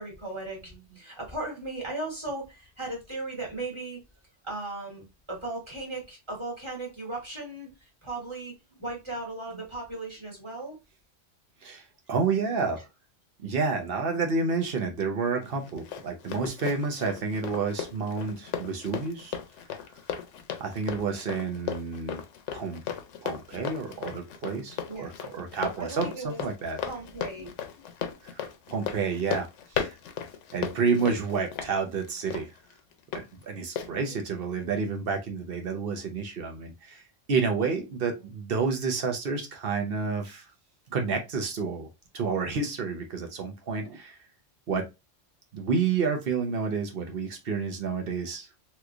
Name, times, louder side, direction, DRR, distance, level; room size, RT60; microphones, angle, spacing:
voice 1, 0.0-4.0 4.4-8.5 8.8-10.8 24.9-25.1 25.8-26.4 26.8-27.9 33.8-34.2 38.1-38.2, right 2 dB, 25° right, 1.3 m, -37 dB
voice 2, 11.6-12.8 13.4-19.4 20.6-22.2 22.5-22.8 23.2-26.8 28.2-28.4 28.7-30.0 30.5-32.5 33.4-37.0 37.3-40.5 40.9-41.9 42.1-44.2 44.7-44.9 45.5-48.5, right 5 dB, 55° right, 0.9 m, -29 dB
Run, 15.4-33.2 33.8-33.9, left 8 dB, 80° left, 0.9 m, -36 dB
3.1 x 3.0 x 2.4 m
omnidirectional pair, 1.2 m